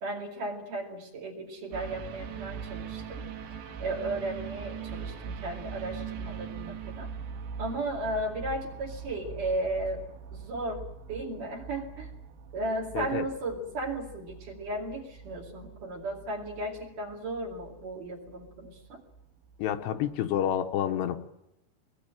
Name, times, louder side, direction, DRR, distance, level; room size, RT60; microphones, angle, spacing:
voice 1, 0.0-3.3 3.8-7.1 7.6-10.0 10.3-10.8 11.1-12.1 12.5-19.0, right 1 dB, 50° right, 0 dB, 3.6 m, -35 dB
sound 1, 1.7-20.1 20.5-20.6, right 6 dB, 80° right, 4.0 m, -42 dB
voice 2, 12.9-13.3 19.6-21.2, left 10 dB, 75° left, 6 dB, 3.0 m, -29 dB
23.5 x 20.5 x 9.0 m, 0.84 s
omnidirectional pair, 5.2 m